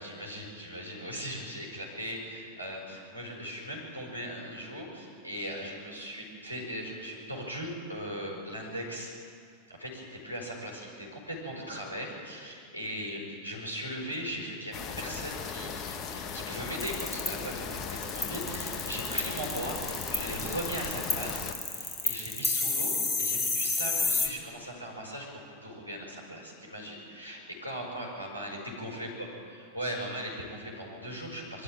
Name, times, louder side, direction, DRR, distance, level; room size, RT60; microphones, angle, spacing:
voice 1, 0.0-9.1 9.7-25.3 25.6-29.3 29.5-31.6, equal, 90° right, -2 dB, 5.8 m, -39 dB
sound 1, 14.7-21.5, left 6 dB, 30° left, 1.5 m, -38 dB
sound 2, 16.8-24.3, left 3 dB, 10° left, 2.7 m, -30 dB
23.0 x 13.5 x 8.9 m, 2.4 s
figure-of-eight pair, 90°, 0 cm